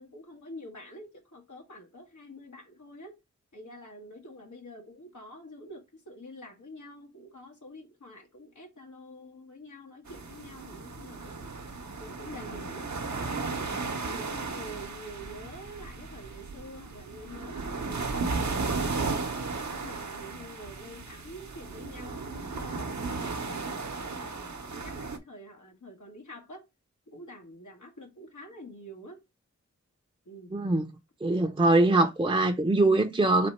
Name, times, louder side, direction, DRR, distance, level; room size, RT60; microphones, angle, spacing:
voice 1, 0.0-3.2 3.5-11.5 12.0-12.9 13.3-19.2 19.7-26.6 27.1-29.2 30.2-30.6, equal, 85° left, 1.6 m, -47 dB
sound 1, 10.1-25.2, right 4 dB, 70° right, 0.9 m, -35 dB
voice 2, 30.5-30.9 31.2-33.5, right 2 dB, 20° right, 0.6 m, -23 dB
4.2 x 2.7 x 4.3 m
wide cardioid pair, 50°, 29 cm